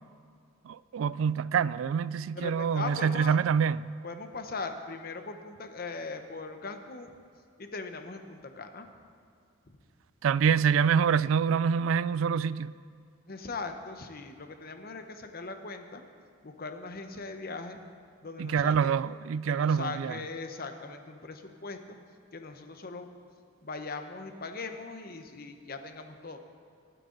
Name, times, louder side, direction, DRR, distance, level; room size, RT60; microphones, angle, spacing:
voice 1, 0.7-3.8 10.2-12.7 18.4-20.2, right 7 dB, 80° right, 0.3 m, -26 dB
voice 2, 2.3-3.4 4.0-7.2 7.6-8.9 9.7-9.8 13.3-16.0 16.4-17.8 18.2-18.9 19.4-22.0 22.3-23.1 23.6-26.4, left 3 dB, 50° left, 1.0 m, -40 dB
23.5 x 9.0 x 3.9 m
head